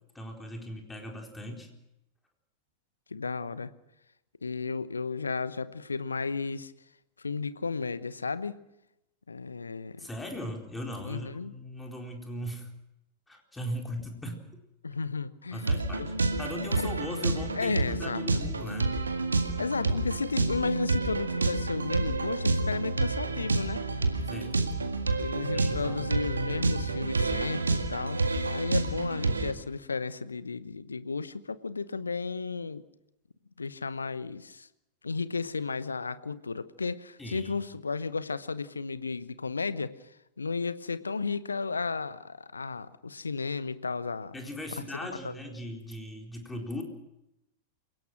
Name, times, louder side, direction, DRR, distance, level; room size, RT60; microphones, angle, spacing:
voice 1, 0.1-1.7 10.0-12.7 13.3-14.4 15.5-16.1 16.4-19.0 24.3-24.6 25.5-26.1 37.2-37.6 44.3-46.8, left 1 dB, 10° left, 1 dB, 4.2 m, -39 dB
voice 2, 3.1-3.7 4.4-6.7 7.2-8.6 9.3-10.1 11.0-11.5 14.8-16.1 17.6-18.4 19.6-24.1 25.2-32.8 33.6-34.7 35.0-39.9 40.4-44.3 44.7-44.8 45.2-45.4, left 4 dB, 75° left, 15 dB, 1.0 m, -33 dB
sound 1, 15.6-29.5, right 3 dB, 75° right, 1.9 m, -29 dB
28.5 x 17.5 x 6.2 m, 0.87 s
figure-of-eight pair, 90°, 0 cm